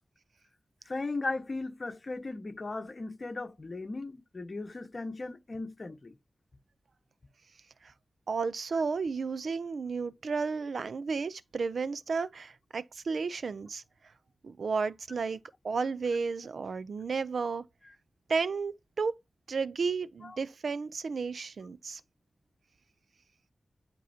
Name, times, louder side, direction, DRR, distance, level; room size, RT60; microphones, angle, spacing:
voice 1, 0.9-6.1 20.2-20.4, left 3 dB, 40° left, 1.4 m, -37 dB
voice 2, 8.3-13.8 14.4-15.4 15.6-17.6 18.3-19.2 19.5-22.0, right 4 dB, 70° right, 0.5 m, -32 dB
11.0 x 4.6 x 2.8 m
wide cardioid pair, 110°, 0 cm